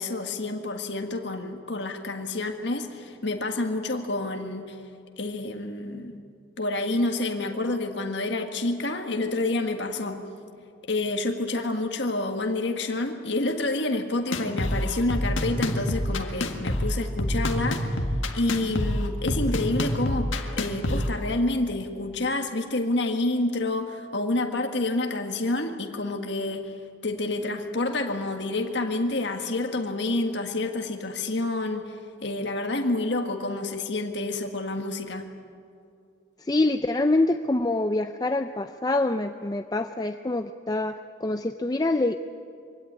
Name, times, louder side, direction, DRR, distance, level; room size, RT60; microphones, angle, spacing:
voice 1, 0.0-4.8 5.2-6.2 6.6-10.2 10.9-18.0 18.3-26.7 27.0-32.0 32.2-35.3, left 2 dB, 60° left, 4 dB, 1.7 m, -28 dB
sound 1, 14.3-21.1, left 1 dB, 80° left, 1.7 m, -27 dB
voice 2, 36.4-42.2, left 2 dB, 20° left, 8 dB, 0.5 m, -25 dB
23.5 x 17.0 x 9.7 m, 2.4 s
head